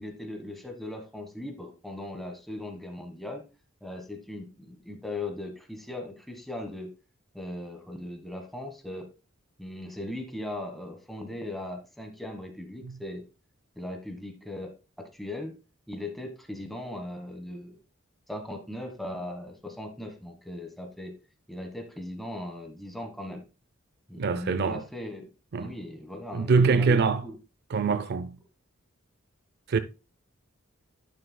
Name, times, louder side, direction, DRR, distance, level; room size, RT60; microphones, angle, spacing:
voice 1, 0.0-3.4 3.8-6.9 7.3-9.1 9.6-13.2 13.8-15.5 15.9-17.8 18.3-21.1 21.5-23.4 24.1-25.3 25.5-27.3, left 1 dB, ahead, 1.3 m, -38 dB
voice 2, 24.2-24.8 25.5-25.7 26.3-27.2 27.7-28.4 29.7-29.8, right 4 dB, 50° right, 0.5 m, -24 dB
11.0 x 6.7 x 2.2 m
head